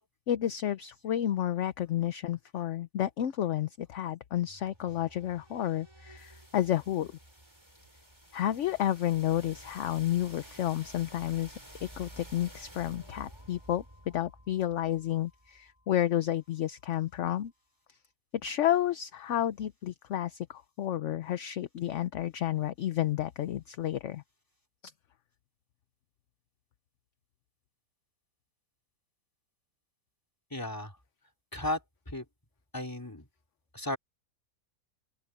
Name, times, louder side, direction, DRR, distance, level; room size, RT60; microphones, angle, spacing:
voice 1, 0.3-7.2 8.3-17.5 17.9-18.0 18.4-24.2, left 12 dB, 65° left, 0.9 m, -31 dB
sound 1, 4.4-16.3, right 1 dB, 15° right, 5.7 m, -52 dB
voice 2, 30.5-31.0 31.5-32.2 32.7-33.2 33.7-34.0, left 1 dB, 15° left, 3.2 m, -35 dB
open air
omnidirectional pair, 1.5 m